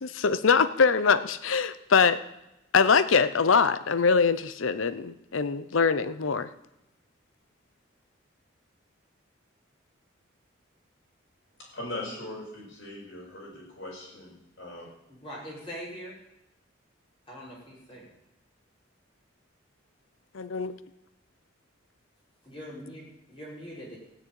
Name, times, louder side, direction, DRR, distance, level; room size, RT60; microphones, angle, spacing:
voice 1, 0.0-2.2 2.7-6.5 20.3-20.8, left 5 dB, 85° left, 14 dB, 0.7 m, -23 dB
voice 2, 11.6-14.9, left 1 dB, 60° left, -4 dB, 6.3 m, -40 dB
voice 3, 15.1-16.1 17.3-18.1 22.4-24.0, equal, 25° left, -6 dB, 5.1 m, -42 dB
16.0 x 6.7 x 9.0 m, 0.87 s
head